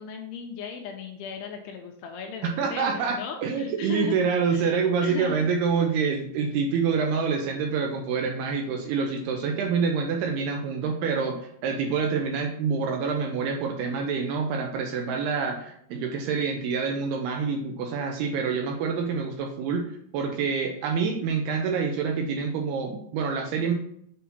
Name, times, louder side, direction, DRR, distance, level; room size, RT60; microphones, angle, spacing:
voice 1, 0.0-4.2 4.5-5.5, left 7 dB, 85° left, 3 dB, 2.4 m, -37 dB
voice 2, 2.6-11.4 11.6-23.7, right 5 dB, 80° right, 2 dB, 2.4 m, -27 dB
7.4 x 2.8 x 5.5 m, 0.68 s
omnidirectional pair, 5.1 m